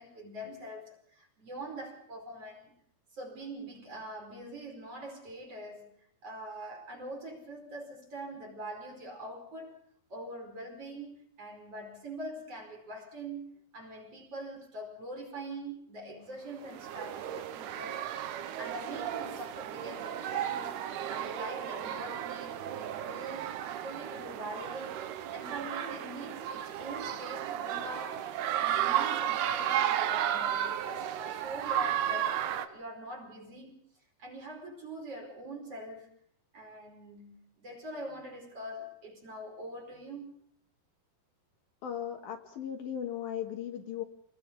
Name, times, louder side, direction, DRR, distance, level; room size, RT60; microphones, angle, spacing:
voice 1, 0.0-2.7 3.1-5.9 6.2-9.8 10.1-18.1 18.5-20.7 21.1-23.5 23.8-25.0 25.3-28.3 28.6-33.8 34.2-36.1 36.5-40.5, right 1 dB, 35° right, 5.5 m, -43 dB
sound 1, 16.6-32.7, right 11 dB, 75° right, 2.9 m, -34 dB
voice 2, 41.8-44.0, left 9 dB, 65° left, 2.8 m, -37 dB
28.5 x 20.5 x 5.3 m
omnidirectional pair, 4.8 m